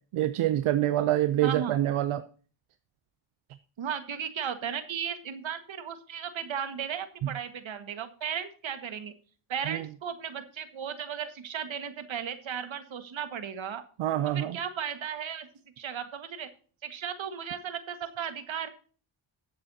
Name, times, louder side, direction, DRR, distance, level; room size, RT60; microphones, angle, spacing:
voice 1, 0.1-2.2 9.7-9.8 14.0-14.6, right 13 dB, 85° right, 12 dB, 0.7 m, -26 dB
voice 2, 1.4-1.8 3.8-9.1 9.5-13.8 14.2-15.5 15.8-16.5 16.8-18.7, right 8 dB, 70° right, 9 dB, 1.7 m, -35 dB
19.5 x 7.7 x 2.8 m, 0.41 s
cardioid pair, 60°, 49 cm